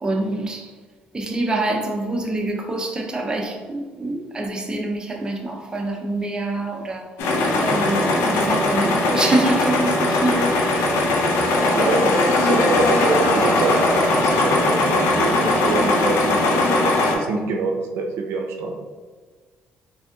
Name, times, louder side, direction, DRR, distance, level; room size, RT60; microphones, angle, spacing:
voice 1, 0.0-0.7 1.1-7.1 7.5-11.0 11.6-12.1, right 2 dB, 20° right, 0.6 m, -25 dB
sound 1, 7.2-17.2, left 2 dB, 80° left, 0.7 m, -19 dB
voice 2, 11.7-13.8 14.1-18.8, right 3 dB, 80° right, 0.5 m, -26 dB
4.0 x 3.6 x 2.3 m
cardioid pair, 90°, 4 cm